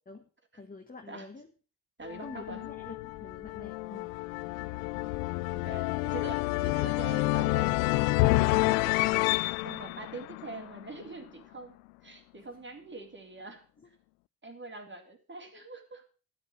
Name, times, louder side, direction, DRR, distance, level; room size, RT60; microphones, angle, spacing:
voice 1, 0.5-1.5 2.2-3.0 3.2-4.1 12.4-12.5, left 3 dB, 20° left, 4 dB, 1.7 m, -46 dB
sound 1, 2.0-11.1, left 21 dB, 70° left, 0.6 m, -29 dB
voice 2, 2.0-2.7 5.5-7.7 8.1-11.8 12.0-13.6 14.4-16.0, right 3 dB, 25° right, 4 dB, 3.4 m, -44 dB
13.0 x 8.4 x 6.3 m, 0.37 s
figure-of-eight pair, 45°, 44 cm